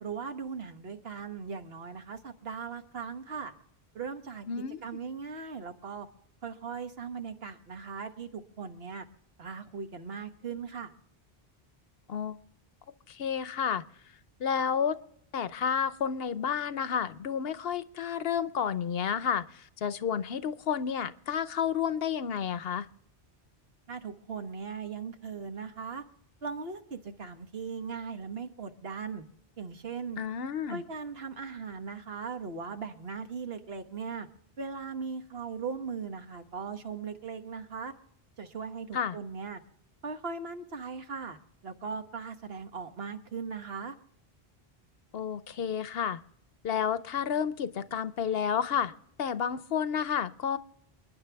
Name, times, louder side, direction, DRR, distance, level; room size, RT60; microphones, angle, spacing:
voice 1, 0.0-3.5 3.9-4.5 4.8-6.1 6.4-9.1 9.4-10.9 23.9-26.0 26.4-29.2 29.6-30.2 30.7-34.3 34.6-37.9 38.4-39.6 40.0-41.4 41.6-43.9, right 5 dB, 70° right, 6 dB, 1.4 m, -39 dB
voice 2, 4.5-5.0 12.1-12.4 13.1-13.8 14.4-15.0 15.3-22.9 30.2-30.8 38.9-39.2 45.1-46.2 46.6-48.9 49.2-50.6, left 7 dB, 70° left, 14 dB, 0.9 m, -31 dB
29.0 x 10.0 x 3.4 m, 0.73 s
omnidirectional pair, 1.0 m